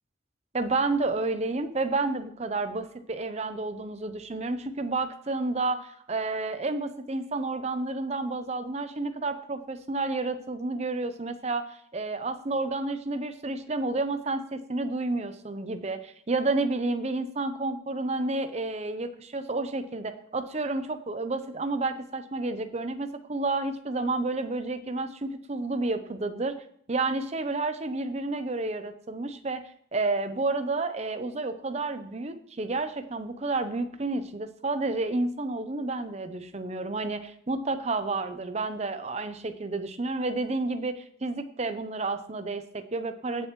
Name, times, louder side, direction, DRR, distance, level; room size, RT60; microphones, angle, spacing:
voice 1, 0.5-26.6 26.9-43.5, right 3 dB, 35° right, 10 dB, 0.8 m, -30 dB
17.5 x 6.7 x 3.1 m, 0.64 s
head